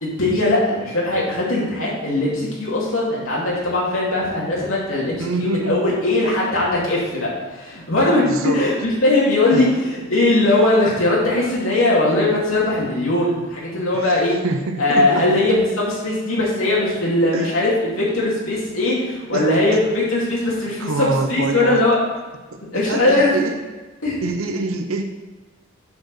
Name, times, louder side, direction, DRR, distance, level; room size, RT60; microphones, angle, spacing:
voice 1, 0.0-14.4 14.8-22.0 22.7-23.3 24.0-24.2, left 2 dB, 75° left, -5 dB, 2.6 m, -20 dB
voice 2, 5.2-5.8 8.2-8.7 9.5-9.7 13.9-15.3 17.3-17.6 19.3-19.8 20.8-21.9 22.5-23.6 24.2-25.0, right 2 dB, 85° right, 5 dB, 0.7 m, -26 dB
7.2 x 4.8 x 6.1 m, 1.3 s
head